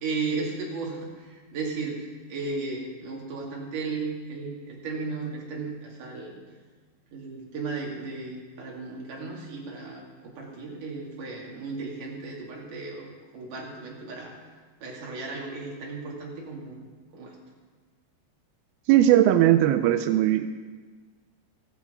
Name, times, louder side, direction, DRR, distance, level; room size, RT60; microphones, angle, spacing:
voice 1, 0.0-6.5 7.1-14.4 14.8-16.9 17.1-17.4, right 4 dB, 50° right, -2 dB, 4.0 m, -35 dB
voice 2, 18.9-20.5, right 12 dB, 85° right, 9 dB, 2.2 m, -19 dB
14.5 x 13.5 x 5.3 m, 1.4 s
omnidirectional pair, 5.0 m